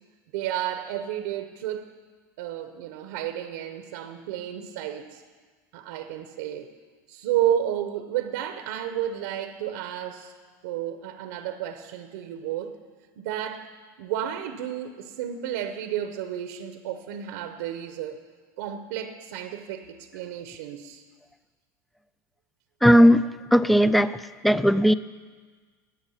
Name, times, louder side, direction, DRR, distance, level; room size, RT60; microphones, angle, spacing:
voice 1, 0.3-1.9 2.4-5.2 5.7-6.7 7.1-10.3 10.6-12.7 13.2-13.7 14.0-18.2 18.6-21.0, right 11 dB, 85° right, 8 dB, 0.9 m, -31 dB
voice 2, 22.8-24.9, equal, ahead, 15 dB, 0.3 m, -18 dB
19.0 x 7.3 x 5.6 m, 1.5 s
supercardioid pair, 130°, 9 cm